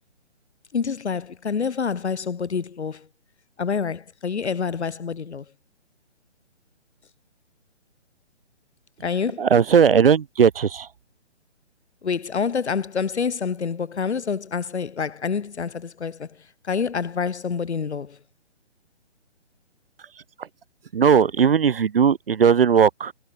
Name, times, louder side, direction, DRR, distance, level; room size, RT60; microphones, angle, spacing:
voice 1, 0.7-3.1 3.6-5.4 9.0-9.5 12.0-16.3 16.6-18.2, left 6 dB, 70° left, 2.4 m, -27 dB
voice 2, 9.4-10.9 20.1-20.5 20.9-23.1, right 7 dB, 50° right, 1.1 m, -18 dB
hypercardioid pair, 165°, 35 cm